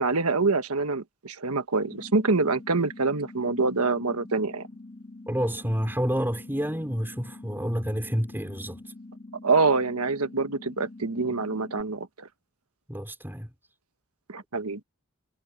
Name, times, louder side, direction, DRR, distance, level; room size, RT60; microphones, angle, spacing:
voice 1, 0.0-4.7 9.4-12.3 14.3-14.8, right 3 dB, 75° right, 1.4 m, -25 dB
sound 1, 1.8-11.8, left 2 dB, 25° left, 2.8 m, -45 dB
voice 2, 5.3-8.9 12.9-13.5, equal, 10° right, 4.7 m, -29 dB
head